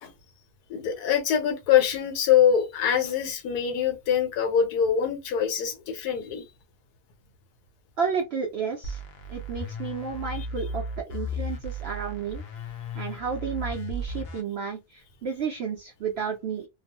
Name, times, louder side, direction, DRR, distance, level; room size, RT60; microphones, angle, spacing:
voice 1, 0.7-6.5, left 8 dB, 90° left, 1.3 m, -24 dB
voice 2, 8.0-9.0 9.3-12.4 13.0-16.7, right 6 dB, 80° right, 0.5 m, -32 dB
sound 1, 8.8-14.4, left 1 dB, 65° left, 0.6 m, -35 dB
2.8 x 2.0 x 2.8 m
omnidirectional pair, 1.6 m